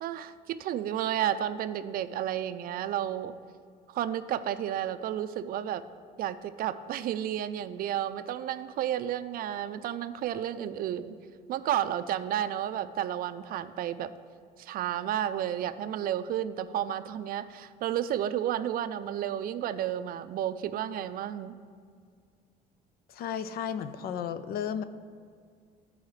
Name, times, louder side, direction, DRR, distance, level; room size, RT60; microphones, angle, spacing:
voice 1, 0.0-3.3 3.9-5.8 6.2-11.1 11.5-14.1 14.6-21.6, right 11 dB, 60° right, 11 dB, 0.4 m, -32 dB
voice 2, 23.1-24.8, left 8 dB, 65° left, 12 dB, 0.5 m, -33 dB
14.0 x 4.7 x 3.2 m, 2.1 s
cardioid pair, 110°, 17 cm